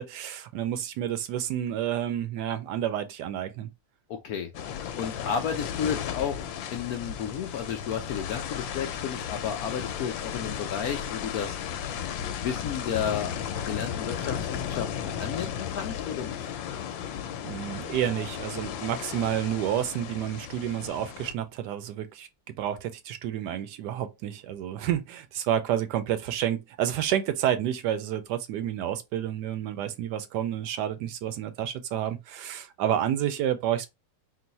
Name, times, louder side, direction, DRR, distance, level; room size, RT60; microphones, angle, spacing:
voice 1, 0.0-3.7 17.4-22.3 22.6-33.9, right 10 dB, 75° right, 1.1 m, -30 dB
voice 2, 4.1-4.5 5.0-11.6 12.4-16.5, left 8 dB, 70° left, 0.9 m, -32 dB
sound 1, 4.5-21.3, left 9 dB, 90° left, 1.3 m, -35 dB
3.8 x 2.5 x 3.9 m
omnidirectional pair, 2.0 m